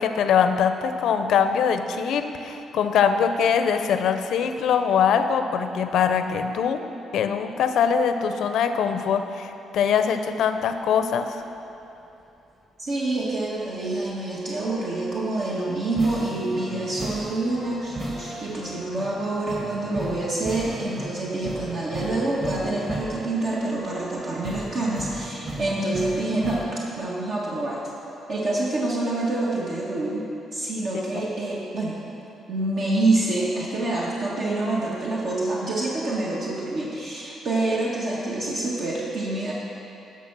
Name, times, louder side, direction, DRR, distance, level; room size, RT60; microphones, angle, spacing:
voice 1, 0.0-6.9 7.1-11.4 30.9-31.2, left 7 dB, 75° left, 8 dB, 0.6 m, -23 dB
voice 2, 12.8-26.6 27.0-27.8 28.3-30.2 30.5-32.0 32.5-39.5, right 2 dB, 60° right, -5 dB, 1.5 m, -27 dB
sound 1, 15.3-26.6, right 1 dB, 30° right, 1.7 m, -36 dB
11.5 x 5.9 x 6.0 m, 2.9 s
cardioid pair, 90°, 0 cm